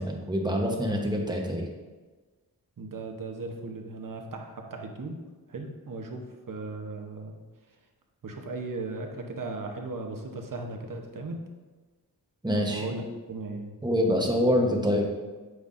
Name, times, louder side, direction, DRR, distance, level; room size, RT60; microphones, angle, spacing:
voice 1, 0.0-1.7 12.4-12.8 13.8-15.0, equal, 10° right, 0 dB, 1.0 m, -25 dB
voice 2, 2.8-5.2 5.5-7.4 8.2-11.4 12.7-13.0 13.3-13.8, right 3 dB, 55° right, 3 dB, 0.9 m, -37 dB
9.3 x 5.7 x 2.6 m, 1.3 s
wide cardioid pair, 125°, 38 cm